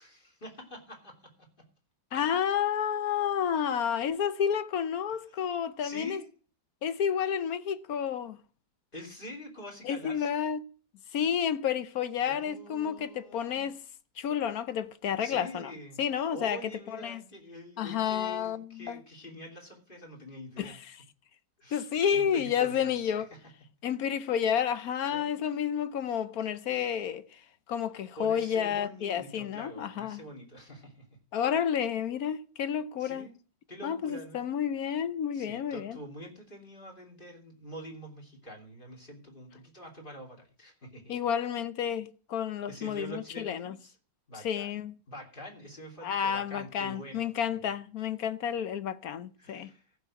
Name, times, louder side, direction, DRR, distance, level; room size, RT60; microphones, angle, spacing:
voice 1, 0.0-1.7 5.3-5.5 5.8-6.3 8.9-10.4 12.3-13.7 15.2-16.0 16.3-20.8 21.6-23.4 25.1-25.4 28.2-31.1 33.0-33.3 33.7-34.5 35.3-41.1 42.7-44.0 44.3-44.8 45.1-47.4 49.4-50.0, equal, 30° left, 3.0 m, -46 dB
voice 2, 2.1-6.2 6.8-8.4 9.8-10.6 11.1-13.8 14.2-15.7 16.0-17.2 17.8-19.0 20.6-20.8 21.7-23.3 23.8-27.4 27.7-30.2 31.3-33.3 33.8-36.0 41.1-43.7 44.4-44.9 46.0-49.7, left 8 dB, 65° left, 1.1 m, -30 dB
14.5 x 6.3 x 5.9 m
omnidirectional pair, 2.0 m